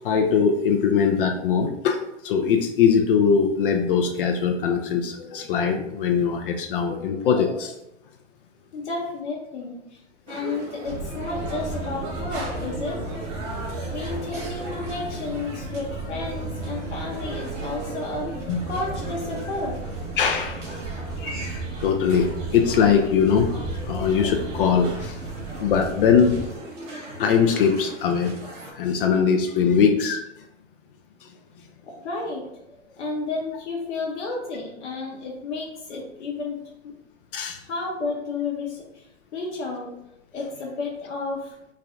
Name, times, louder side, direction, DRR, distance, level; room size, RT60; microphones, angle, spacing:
voice 1, 0.0-7.7 18.5-18.6 20.2-20.7 21.2-23.6 23.9-25.2 25.6-26.3 27.2-28.3 28.7-30.2 37.3-37.6, left 6 dB, 50° left, 4 dB, 0.4 m, -21 dB
voice 2, 8.7-10.0 10.3-13.1 13.9-19.8 31.8-36.6 36.8-36.9 37.6-39.1 39.3-39.9 40.3-41.5, left 3 dB, 70° left, -3 dB, 0.8 m, -32 dB
sound 1, 10.3-28.7, right 2 dB, 80° right, 1.1 m, -39 dB
sound 2, 10.9-26.5, right 3 dB, 50° right, 1.4 m, -34 dB
3.2 x 2.4 x 3.7 m, 0.86 s
hypercardioid pair, 110°, 36 cm